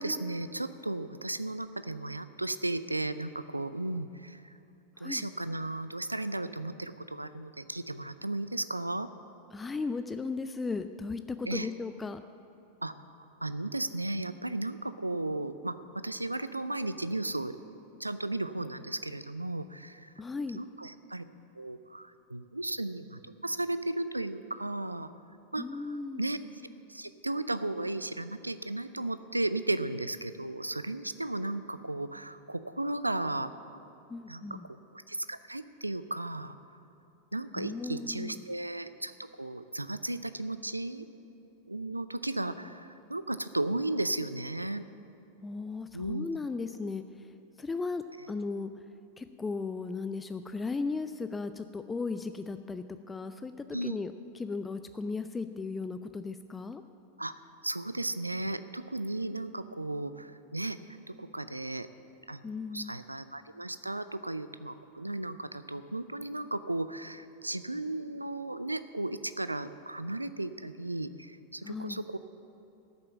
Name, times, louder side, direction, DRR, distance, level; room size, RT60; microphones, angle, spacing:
voice 1, 0.0-4.4 5.0-9.1 11.4-11.7 12.8-12.9 13.4-17.6 18.0-20.1 20.5-21.2 21.6-25.1 25.5-26.4 26.9-33.8 34.3-34.6 34.9-36.5 37.3-41.1 41.7-44.8 45.9-46.3 53.7-54.0 57.2-60.8 61.1-61.9 62.3-72.2, right 2 dB, 85° right, 13 dB, 0.4 m, -35 dB
voice 2, 9.5-12.2 20.2-20.6 25.6-26.3 34.1-34.7 37.6-38.4 45.4-47.0 47.6-48.7 49.2-56.8 62.4-63.0 71.6-72.0, left 4 dB, 15° left, 9 dB, 0.4 m, -36 dB
13.0 x 7.7 x 7.2 m, 2.9 s
figure-of-eight pair, 90°, 0 cm